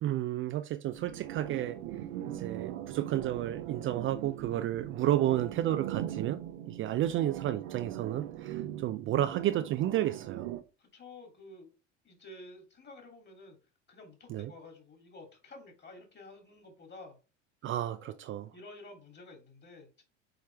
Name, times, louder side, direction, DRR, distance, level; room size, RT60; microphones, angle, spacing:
voice 1, 0.0-6.4 6.7-10.6 14.3-14.5 17.6-18.5, right 12 dB, 35° right, 0.5 m, -32 dB
sound 1, 0.8-10.6, right 12 dB, 60° right, 0.9 m, -40 dB
voice 2, 10.8-11.7 12.0-13.6 13.9-17.2 17.6-18.1 18.5-20.0, left 2 dB, 30° left, 2.8 m, -51 dB
7.8 x 4.5 x 3.3 m
figure-of-eight pair, 70°, 36 cm